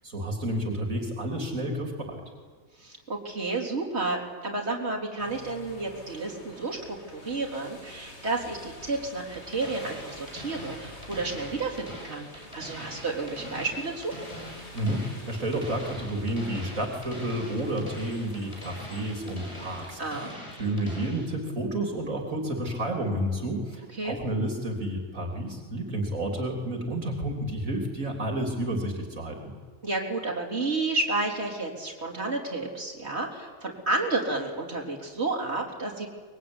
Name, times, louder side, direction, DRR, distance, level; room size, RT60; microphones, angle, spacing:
voice 1, 0.0-2.2 14.7-29.4, right 1 dB, 70° right, 2 dB, 3.9 m, -30 dB
voice 2, 2.8-14.1 20.0-20.3 23.9-24.2 29.8-36.1, right 3 dB, 50° right, -1 dB, 4.2 m, -31 dB
sound 1, 5.2-20.0, left 1 dB, 50° left, 3.8 m, -48 dB
sound 2, 9.3-21.3, equal, 20° left, 6.5 m, -43 dB
24.0 x 22.0 x 9.9 m, 1.5 s
omnidirectional pair, 1.5 m